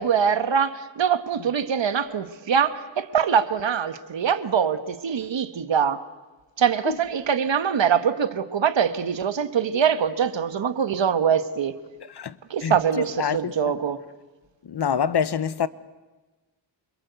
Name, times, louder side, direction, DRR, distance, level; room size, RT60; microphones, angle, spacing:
voice 1, 0.0-6.0 6.6-11.8 12.5-14.0, right 7 dB, 70° right, 1.5 m, -23 dB
voice 2, 12.0-12.4 12.6-13.5 14.6-15.7, left 7 dB, 55° left, 1.0 m, -26 dB
28.0 x 25.0 x 8.2 m
wide cardioid pair, 130°, 47 cm